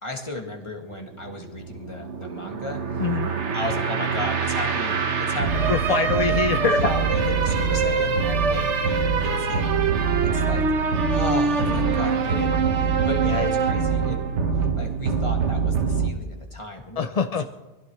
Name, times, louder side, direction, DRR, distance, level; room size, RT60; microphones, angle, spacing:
voice 1, 0.0-2.8 3.5-5.8 6.6-9.7 10.2-10.6 11.1-14.2 14.8-17.5, left 1 dB, 25° left, 1 dB, 2.2 m, -34 dB
sound 1, 0.9-16.1, right 5 dB, 80° right, 1.4 m, -23 dB
voice 2, 3.0-3.3 5.7-6.8 13.2-13.8 17.0-17.4, left 6 dB, 45° left, 8 dB, 0.5 m, -25 dB
25.0 x 16.0 x 3.2 m, 1.1 s
omnidirectional pair, 1.2 m